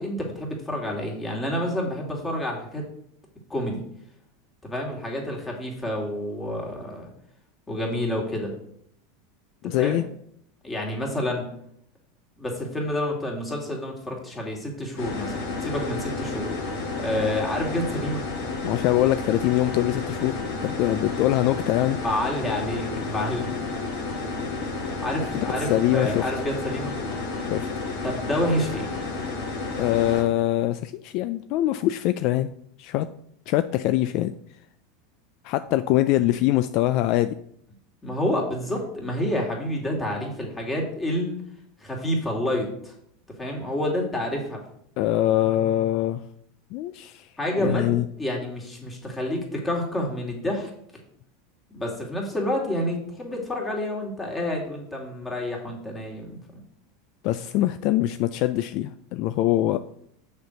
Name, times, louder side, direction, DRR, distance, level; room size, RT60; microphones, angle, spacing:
voice 1, 0.0-2.9 3.5-3.8 4.6-7.1 7.7-8.5 9.6-10.0 10.6-11.5 12.4-18.2 22.0-23.5 25.0-26.9 28.0-28.9 38.0-41.3 41.8-42.9 43.4-44.6 47.4-47.9 48.2-50.7 51.7-56.4, left 1 dB, 15° left, -1 dB, 2.6 m, -28 dB
voice 2, 9.6-10.0 18.6-22.0 25.6-26.3 27.5-27.7 29.8-32.5 32.8-33.1 33.5-34.3 35.4-37.4 45.0-46.2 46.7-47.3 47.6-48.1 57.2-59.8, left 14 dB, 55° left, 12 dB, 0.3 m, -23 dB
sound 1, 15.0-30.2, left 3 dB, 70° left, 2.4 m, -31 dB
6.6 x 4.5 x 6.6 m, 0.70 s
supercardioid pair, 115°, 0 cm